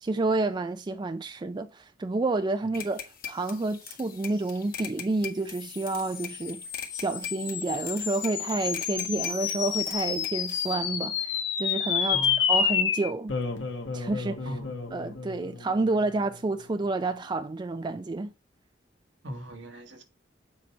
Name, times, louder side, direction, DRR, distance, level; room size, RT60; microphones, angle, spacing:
voice 1, 0.0-6.6 6.9-13.3 13.9-14.5 14.9-18.3, right 2 dB, 25° right, 0.3 m, -29 dB
sound 1, 2.7-10.7, left 8 dB, 50° left, 1.4 m, -42 dB
sound 2, 5.8-16.5, left 7 dB, 75° left, 1.5 m, -30 dB
voice 2, 12.1-12.4 14.4-14.7 19.2-20.0, equal, 70° right, 1.4 m, -38 dB
7.6 x 4.2 x 4.5 m
head